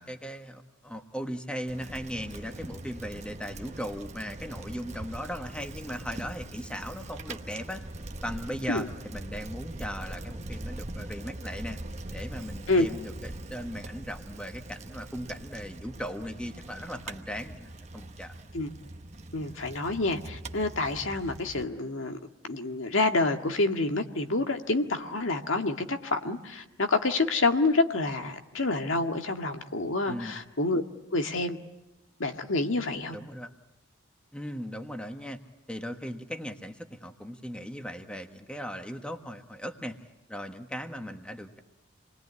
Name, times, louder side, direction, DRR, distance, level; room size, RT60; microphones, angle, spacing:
voice 1, 0.0-7.8 8.2-11.8 12.1-18.3 30.1-30.4 33.1-33.5 34.3-35.4 35.7-40.0 40.3-41.6, equal, 5° left, 6 dB, 1.4 m, -38 dB
Bicycle, 1.7-21.6, right 1 dB, 35° right, 1.1 m, -42 dB
voice 2, 19.3-22.2 22.4-30.8 31.1-31.6 32.2-33.2, left 2 dB, 85° left, 5 dB, 1.9 m, -28 dB
28.0 x 21.0 x 9.8 m, 1.0 s
head